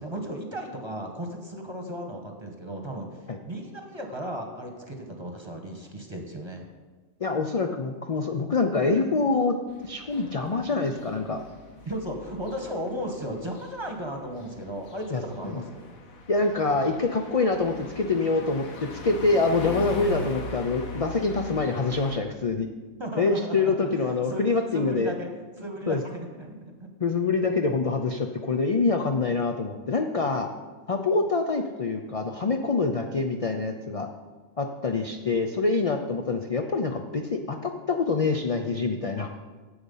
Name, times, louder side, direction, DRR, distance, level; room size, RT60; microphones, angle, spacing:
voice 1, 0.0-6.6 11.8-15.9 23.0-26.5 26.8-26.9, equal, 20° right, 2 dB, 1.3 m, -35 dB
voice 2, 7.2-9.6 9.8-11.4 15.1-15.6 16.3-22.7 23.2-25.1 25.9-26.0 27.0-30.5 30.9-34.1 34.6-39.3, left 3 dB, 45° left, 4 dB, 0.4 m, -25 dB
sound 1, 9.7-22.2, left 2 dB, 80° left, 1.6 m, -41 dB
11.5 x 7.9 x 5.5 m, 1.4 s
omnidirectional pair, 1.5 m